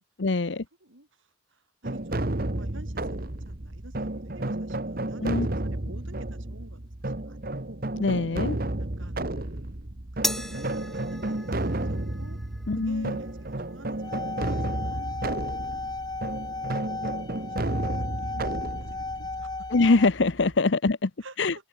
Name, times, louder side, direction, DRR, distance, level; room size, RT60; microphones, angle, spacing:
voice 1, 0.2-0.6 5.2-5.5 8.0-8.6 12.7-13.2 19.7-21.1 21.4-21.5, left 3 dB, 65° left, 0.8 m, -23 dB
voice 2, 0.8-7.9 8.8-12.4 12.8-15.7 17.4-19.7 21.2-21.4, right 1 dB, 85° right, 5.5 m, -50 dB
sound 1, 1.8-20.6, right 1 dB, 50° right, 1.6 m, -32 dB
sound 2, 10.2-16.8, left 1 dB, ahead, 1.2 m, -39 dB
sound 3, 13.9-20.1, left 3 dB, 20° left, 0.8 m, -35 dB
head